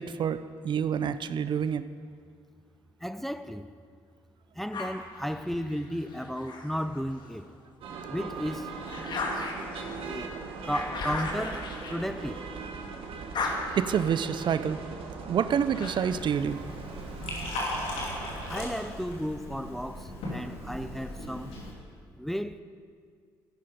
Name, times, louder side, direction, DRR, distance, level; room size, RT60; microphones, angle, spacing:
voice 1, 0.0-1.9 13.8-14.8 15.3-16.6, right 8 dB, 55° right, 0.5 m, -28 dB
voice 2, 3.0-3.7 4.5-7.5 8.1-8.7 10.0-10.4 10.6-12.5 18.5-21.5 22.2-22.6, equal, ahead, 0.5 m, -34 dB
sound 1, 4.7-7.4 7.9-12.7 13.0-16.3, left 3 dB, 50° left, 1.8 m, -38 dB
sound 2, 7.8-18.5, right 4 dB, 75° right, 1.4 m, -40 dB
Liquid, 16.1-21.7, left 1 dB, 80° left, 2.7 m, -37 dB
13.0 x 10.0 x 5.3 m
supercardioid pair, 70°, 10 cm